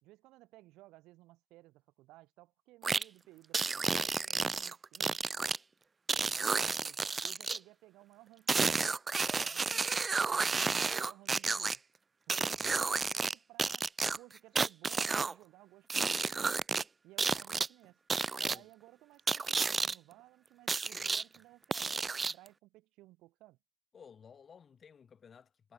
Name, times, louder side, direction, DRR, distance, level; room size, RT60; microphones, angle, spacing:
voice 1, 0.0-5.5 6.3-8.8 9.3-11.8 12.3-13.8 14.2-16.6 17.0-18.0 18.4-23.6, right 18 dB, 45° right, 3.7 m, -58 dB
sound 1, 2.8-3.0 3.5-5.6 6.1-7.6 8.5-11.8 12.3-13.3 13.6-15.3 15.9-16.8 17.2-17.7 18.1-18.6 19.3-19.9 20.7-21.2 21.7-22.5, right 4 dB, 20° right, 0.4 m, -31 dB
voice 2, 12.3-12.8 18.4-18.7 21.0-21.2 23.9-25.7, left 6 dB, 25° left, 1.4 m, -56 dB
figure-of-eight pair, 75°, 0 cm